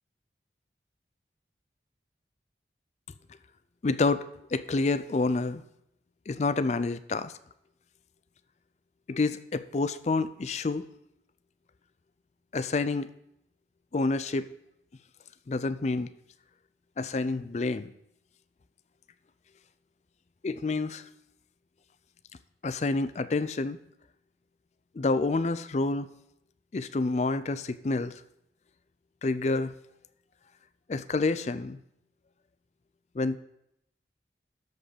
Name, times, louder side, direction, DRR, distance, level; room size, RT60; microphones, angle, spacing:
voice 1, 3.8-4.2 4.5-5.6 6.3-7.3 9.1-10.9 12.5-13.1 13.9-14.5 15.5-16.1 17.0-17.9 20.4-21.0 22.6-23.8 24.9-26.1 26.7-28.1 29.2-29.7 30.9-31.8 33.1-33.4, left 3 dB, 40° left, 14 dB, 0.4 m, -28 dB
13.0 x 5.2 x 4.9 m, 0.79 s
head